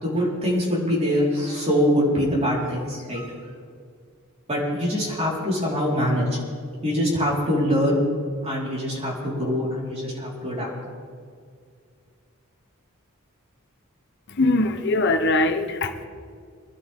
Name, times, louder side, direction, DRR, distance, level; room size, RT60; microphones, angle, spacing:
voice 1, 0.0-3.3 4.5-6.4 6.8-8.0 8.4-10.9, equal, 30° right, -5 dB, 4.8 m, -24 dB
voice 2, 14.3-16.1, left 2 dB, 55° left, 6 dB, 1.1 m, -22 dB
24.0 x 12.0 x 3.8 m, 2.1 s
head